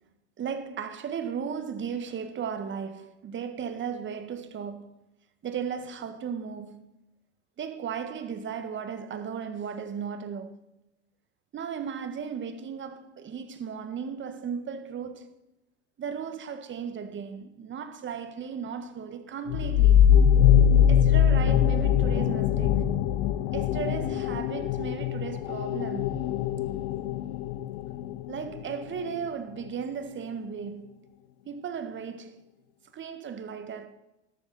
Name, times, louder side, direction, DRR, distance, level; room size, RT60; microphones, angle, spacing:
voice 1, 0.4-5.0 5.4-6.9 7.6-10.6 11.5-15.3 16.0-20.2 20.9-23.0 23.5-26.3 26.7-27.0 28.3-31.0 31.5-32.4 32.9-33.9, right 7 dB, 35° right, 1.8 m, -36 dB
sound 1, 19.5-28.8, left 9 dB, 65° left, 0.9 m, -22 dB
13.5 x 12.5 x 4.3 m
hypercardioid pair, 85°, 35 cm